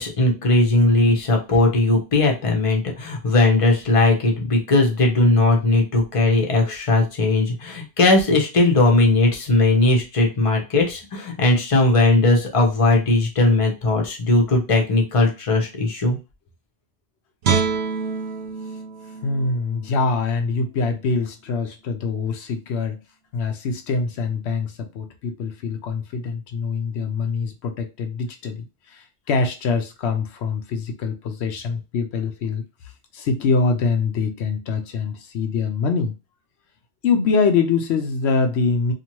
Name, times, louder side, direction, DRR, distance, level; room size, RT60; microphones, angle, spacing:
voice 1, 0.0-16.2, left 2 dB, 35° left, 0.7 m, -18 dB
Guitar, 17.4-20.6 21.0-21.2, right 6 dB, 65° right, 0.9 m, -27 dB
voice 2, 19.2-23.0 23.3-32.6 33.1-36.1 37.0-38.9, left 4 dB, 70° left, 0.8 m, -24 dB
2.7 x 2.5 x 2.9 m
omnidirectional pair, 1.2 m